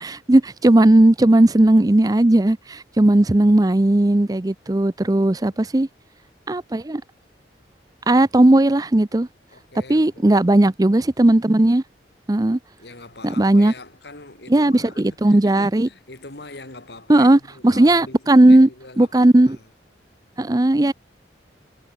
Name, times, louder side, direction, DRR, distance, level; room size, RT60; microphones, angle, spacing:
voice 1, 0.0-5.9 6.5-7.0 8.1-9.3 9.9-11.8 12.3-12.6 13.2-13.7 14.5-15.9 17.1-18.7 19.0-19.6 20.4-20.9, right 1 dB, 20° right, 0.5 m, -16 dB
voice 2, 5.0-5.8 9.5-10.3 12.8-19.7, left 2 dB, 65° left, 2.9 m, -42 dB
head